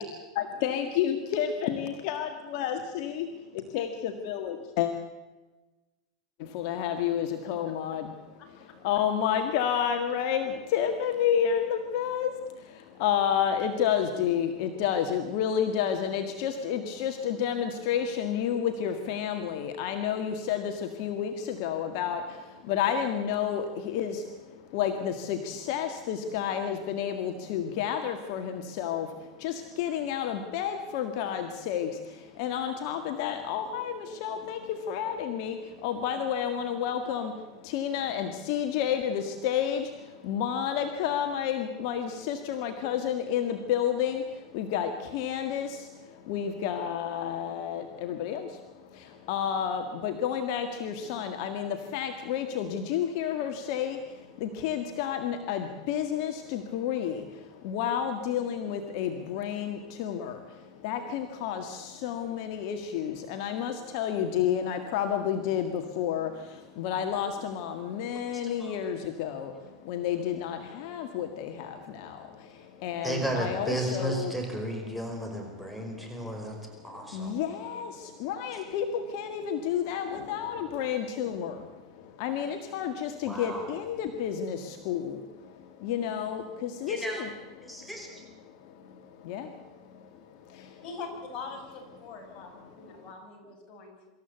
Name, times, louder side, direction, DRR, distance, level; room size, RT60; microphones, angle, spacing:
voice 1, 0.4-4.9 6.4-74.3 75.5-87.3 87.6-90.8 92.6-93.1, left 8 dB, 60° left, 6 dB, 1.9 m, -31 dB
voice 2, 73.0-76.6 76.8-77.4 83.2-83.7 86.9-87.2 87.6-88.1, right 1 dB, ahead, 1 dB, 5.2 m, -33 dB
voice 3, 90.8-94.1, left 4 dB, 40° left, 2 dB, 6.2 m, -42 dB
25.0 x 14.0 x 8.2 m, 1.2 s
supercardioid pair, 130°, 3 cm